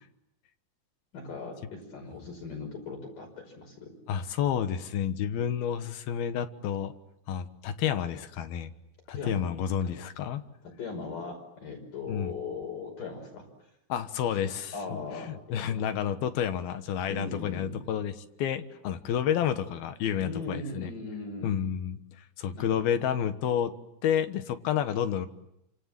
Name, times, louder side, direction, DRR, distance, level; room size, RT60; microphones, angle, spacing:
voice 1, 1.1-3.9 9.1-9.4 10.8-13.5 14.7-15.6 17.1-17.7 20.2-21.5 22.5-22.7, left 4 dB, 60° left, 2 dB, 7.3 m, -39 dB
voice 2, 4.1-6.9 7.3-8.7 9.1-10.4 12.1-12.3 13.9-15.0 15.3-20.9 21.4-22.0 22.4-23.7 24.0-25.3, left 9 dB, 80° left, 9 dB, 3.3 m, -30 dB
29.0 x 27.0 x 7.7 m, 0.83 s
omnidirectional pair, 4.3 m